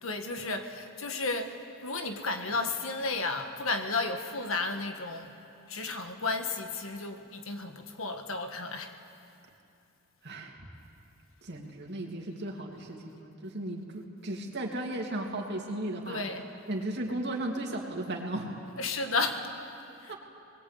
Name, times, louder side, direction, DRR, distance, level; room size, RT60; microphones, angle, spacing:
voice 1, 0.0-5.3 5.7-8.9 16.1-16.5 18.8-19.4 20.0-20.1, left 3 dB, 70° left, 5 dB, 1.8 m, -33 dB
voice 2, 11.4-16.2 16.7-18.5 20.1-20.2, right 1 dB, 55° right, 0 dB, 3.0 m, -35 dB
24.5 x 21.0 x 8.6 m, 2.7 s
head